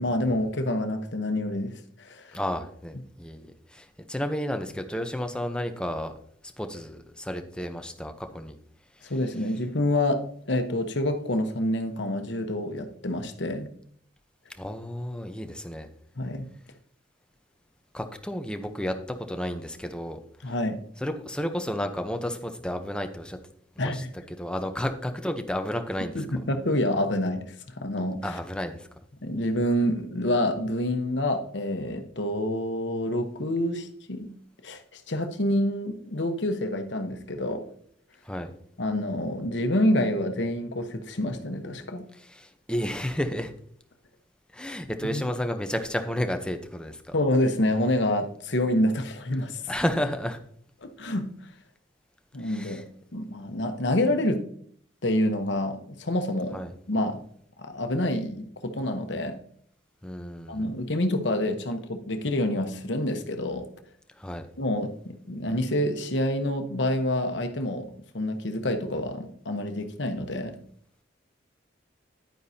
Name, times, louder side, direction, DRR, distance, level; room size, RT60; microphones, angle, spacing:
voice 1, 0.0-1.7 2.0-2.4 9.0-10.2 10.5-13.7 16.2-16.5 20.4-20.8 23.8-24.1 26.1-27.4 27.8-28.4 29.2-34.3 34.6-37.6 38.8-42.0 45.1-45.2 47.1-49.6 50.8-51.3 52.3-52.8 53.1-54.4 55.0-56.6 56.9-57.2 57.6-59.4 60.5-63.7 64.6-67.9 68.1-70.6, left 1 dB, 70° left, 7 dB, 1.1 m, -27 dB
voice 2, 2.3-3.5 3.7-6.1 6.6-8.6 14.6-15.9 17.9-20.2 21.0-23.4 23.8-24.0 24.4-26.2 28.2-28.9 38.2-38.5 42.1-43.5 44.5-47.1 49.7-50.4 52.4-52.8 56.5-56.7 60.0-60.7 64.2-64.5, equal, 5° left, 6 dB, 0.8 m, -32 dB
10.5 x 9.3 x 2.8 m, 0.62 s
head